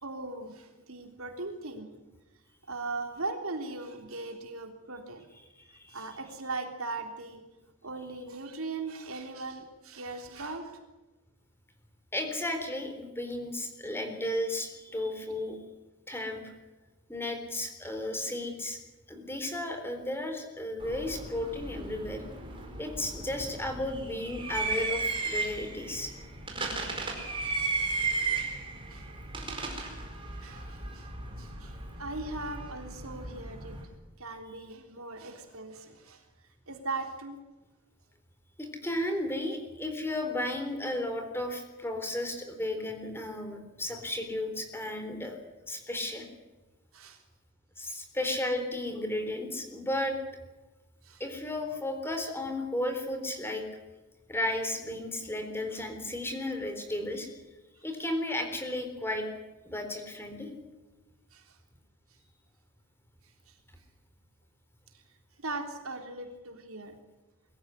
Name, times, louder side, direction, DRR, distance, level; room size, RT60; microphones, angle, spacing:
voice 1, 0.0-1.9 2.7-5.3 5.9-7.4 7.8-10.8 17.8-18.0 28.9-29.1 30.4-31.1 31.4-33.8 34.2-36.3 36.7-37.4 46.9-47.2 51.0-51.2 61.3-61.6 63.5-63.6 64.9-65.0 65.4-67.0, right 3 dB, 65° right, 5 dB, 3.4 m, -39 dB
voice 2, 5.6-6.0 12.1-15.6 16.1-16.4 17.1-18.8 19.1-22.2 22.8-26.1 38.6-45.4 45.7-46.3 47.8-50.2 51.2-53.7 54.3-57.4 57.8-59.3 59.6-60.5, left 1 dB, 10° left, 6 dB, 3.9 m, -34 dB
sound 1, 20.8-33.8, right 3 dB, 25° right, 4.7 m, -35 dB
23.0 x 14.5 x 9.9 m, 1.1 s
head